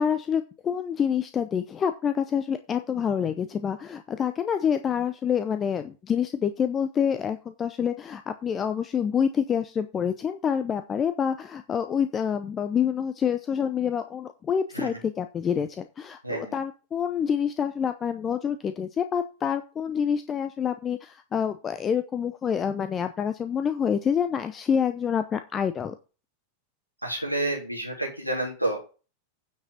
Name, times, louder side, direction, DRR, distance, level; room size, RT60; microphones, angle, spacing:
voice 1, 0.0-25.9, left 7 dB, 25° left, 10 dB, 0.7 m, -27 dB
voice 2, 16.2-16.6 27.0-28.8, right 1 dB, 90° right, -1 dB, 3.3 m, -29 dB
9.8 x 5.9 x 5.3 m, 0.33 s
figure-of-eight pair, 90°, 0 cm